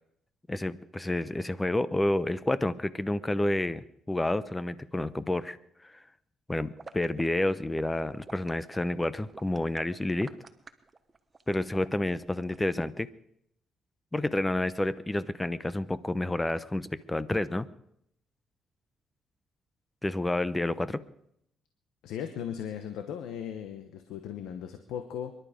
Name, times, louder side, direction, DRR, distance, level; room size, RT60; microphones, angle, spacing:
voice 1, 0.5-5.6 5.8-6.0 6.5-10.3 11.5-13.1 14.1-17.7 20.0-21.0, left 1 dB, 15° left, 16 dB, 0.8 m, -29 dB
sound 1, 6.8-12.9, right 3 dB, 25° right, 1.2 m, -50 dB
voice 2, 22.0-25.3, left 9 dB, 90° left, 8 dB, 1.1 m, -37 dB
24.0 x 11.5 x 5.1 m, 0.74 s
cardioid pair, 90°, 0 cm